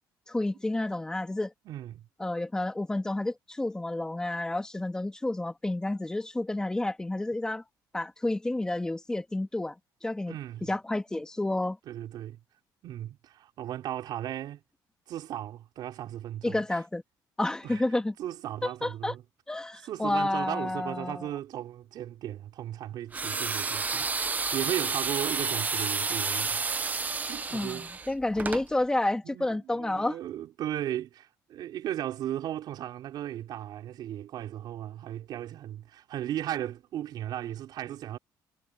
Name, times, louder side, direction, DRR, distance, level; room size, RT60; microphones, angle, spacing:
voice 1, 0.3-1.5 2.2-7.6 7.9-9.7 10.0-10.3 10.7-11.8 16.4-17.0 17.4-18.1 18.6-19.1 19.5-21.3 27.5-30.2, left 2 dB, 10° left, 2.4 m, -30 dB
voice 2, 1.6-2.1 10.3-10.7 11.9-12.4 12.8-14.6 15.1-16.6 17.6-17.8 18.2-19.2 19.8-26.6 26.9-28.1 29.2-38.2, right 12 dB, 65° right, 4.2 m, -36 dB
sound 1, 23.1-28.6, right 4 dB, 20° right, 0.9 m, -30 dB
cardioid pair, 145°, 8 cm